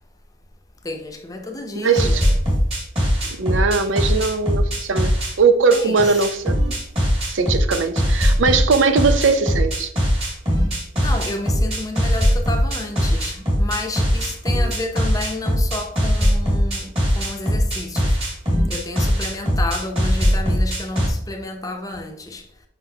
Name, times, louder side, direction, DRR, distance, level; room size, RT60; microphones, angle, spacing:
voice 1, 0.8-2.3 5.7-6.2 11.0-18.2 18.7-22.4, left 2 dB, 20° left, 0.7 m, -31 dB
voice 2, 1.7-2.2 3.2-6.6 7.3-9.9, right 4 dB, 85° right, 0.6 m, -20 dB
sound 1, 1.9-5.3 5.7-21.1, equal, 30° right, 2.3 m, -20 dB
6.0 x 5.7 x 2.8 m
head